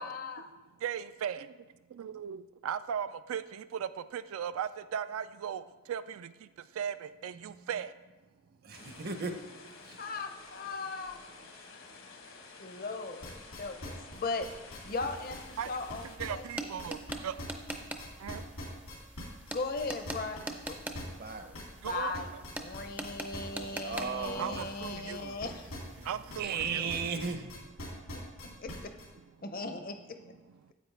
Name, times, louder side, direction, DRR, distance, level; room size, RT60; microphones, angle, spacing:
voice 1, 0.0-0.4 8.8-8.9 10.0-11.2 11.7-16.7 19.5-20.8 21.8-22.3 22.6-25.8 28.1-28.9 29.4-30.2, left 3 dB, 40° left, 7 dB, 0.6 m, -39 dB
voice 2, 0.8-1.5 1.9-8.0 15.6-15.7 16.2-17.4 18.2-18.4 21.8-22.1 24.3-25.4 26.0-26.9 28.0-28.6 30.6-30.7, right 8 dB, 75° right, 13 dB, 0.3 m, -38 dB
voice 3, 8.6-9.4 9.8-10.0 11.6-11.7 21.1-21.7 23.5-24.7 25.0-25.4 26.0-27.5, right 5 dB, 45° right, 7 dB, 0.6 m, -37 dB
sound 1, 8.7-16.2, left 4 dB, 70° left, 1.1 m, -51 dB
sound 2, 13.2-17.1 17.4-26.6 26.9-29.1, left 1 dB, 90° left, 2.7 m, -43 dB
sound 3, 14.9-26.4, right 2 dB, 10° right, 0.4 m, -44 dB
9.2 x 8.2 x 3.3 m, 1.1 s
head